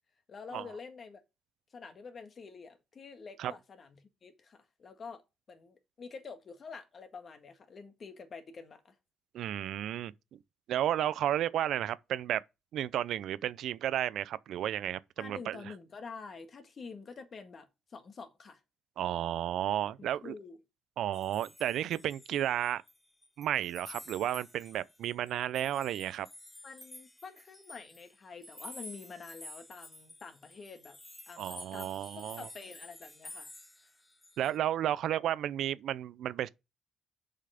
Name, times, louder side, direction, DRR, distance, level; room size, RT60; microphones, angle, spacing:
voice 1, 0.3-1.2 1.7-5.2 5.5-8.9 15.2-18.6 20.0-20.6 26.6-31.0 31.3-31.9 32.1-33.5, left 5 dB, 45° left, 1.8 m, -47 dB
voice 2, 9.3-10.1 10.7-12.4 12.7-15.6 19.0-20.3 21.0-22.8 23.4-26.3 31.4-32.5 34.4-36.5, right 11 dB, 75° right, 0.5 m, -32 dB
sound 1, 21.1-23.0 23.2-34.6, left 1 dB, 10° left, 0.6 m, -51 dB
6.8 x 5.6 x 5.0 m
cardioid pair, 85°, 0 cm